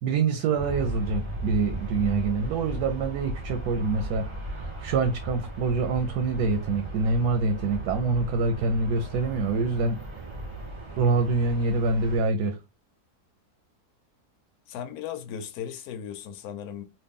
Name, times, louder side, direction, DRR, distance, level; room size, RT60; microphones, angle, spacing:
voice 1, 0.0-10.0 11.0-12.6, right 3 dB, 90° right, 1.2 m, -25 dB
Aircraft, 0.6-12.2, right 1 dB, 25° right, 0.7 m, -36 dB
voice 2, 14.7-16.8, left 9 dB, 75° left, 1.1 m, -36 dB
3.1 x 2.5 x 3.5 m
omnidirectional pair, 1.7 m